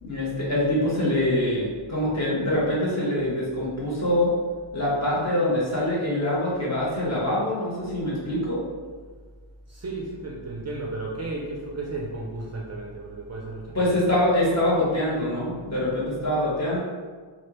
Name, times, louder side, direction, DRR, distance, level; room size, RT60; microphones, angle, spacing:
voice 1, 0.0-4.3 4.7-8.6 13.7-16.8, left 1 dB, 35° left, -7 dB, 1.1 m, -24 dB
voice 2, 9.7-14.0, right 2 dB, 35° right, -3 dB, 0.4 m, -34 dB
3.3 x 2.4 x 2.9 m, 1.5 s
wide cardioid pair, 115°, 46 cm